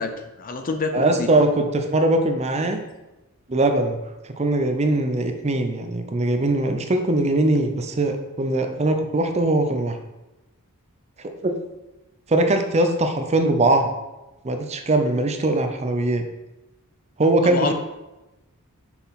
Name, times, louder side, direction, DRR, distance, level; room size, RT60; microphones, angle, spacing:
voice 1, 0.0-1.4 17.4-17.7, left 3 dB, 40° left, 6 dB, 0.6 m, -27 dB
voice 2, 0.9-2.8 3.5-4.0 4.4-10.0 11.4-11.5 12.3-13.9 14.4-16.2 17.2-17.7, right 2 dB, 30° right, 6 dB, 0.6 m, -21 dB
6.1 x 5.7 x 4.1 m, 1.0 s
head